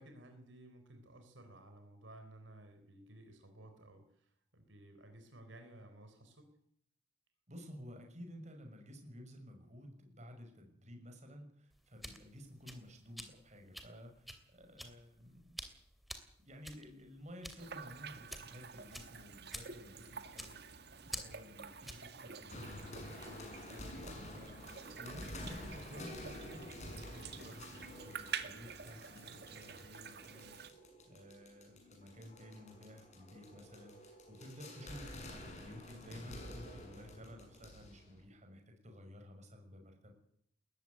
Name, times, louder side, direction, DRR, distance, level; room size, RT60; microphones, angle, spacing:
voice 1, 0.0-6.5, right 1 dB, 75° right, 5 dB, 3.8 m, -56 dB
voice 2, 7.5-15.6 16.4-30.5 31.0-40.1, equal, 35° right, 4 dB, 6.0 m, -53 dB
sound 1, 11.7-22.2, equal, ahead, 2.8 m, -50 dB
sound 2, 17.6-30.7, right 7 dB, 55° right, 1.9 m, -49 dB
sound 3, 22.5-38.2, left 1 dB, 35° left, 6.8 m, -50 dB
20.5 x 14.5 x 9.6 m, 0.71 s
head